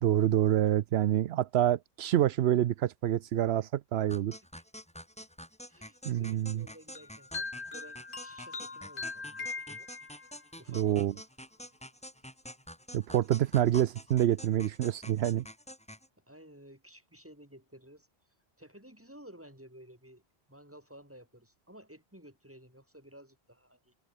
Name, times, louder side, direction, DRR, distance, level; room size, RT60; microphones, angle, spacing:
voice 1, 0.0-4.4 6.0-6.6 10.7-11.1 12.9-15.4, right 12 dB, 80° right, 0.8 m, -27 dB
sound 1, 4.1-16.1, equal, 5° left, 2.0 m, -48 dB
voice 2, 5.7-9.9 10.6-11.2 16.2-18.1 18.6-20.2 20.5-23.9, equal, 10° right, 4.7 m, -54 dB
sound 2, 6.9-10.4, left 3 dB, 55° left, 2.3 m, -41 dB
omnidirectional pair, 1.1 m